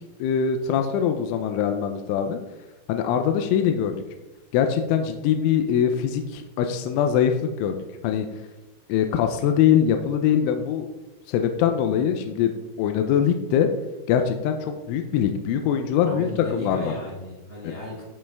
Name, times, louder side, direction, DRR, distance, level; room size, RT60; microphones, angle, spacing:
voice 1, 0.0-2.4 2.9-4.0 4.5-7.8 8.0-8.3 8.9-10.9 11.3-12.5 12.8-13.7 14.1-16.9, left 8 dB, 80° left, 6 dB, 3.0 m, -22 dB
voice 2, 16.0-18.0, left 2 dB, 35° left, -9 dB, 2.4 m, -35 dB
14.5 x 5.5 x 3.5 m, 1.1 s
omnidirectional pair, 5.8 m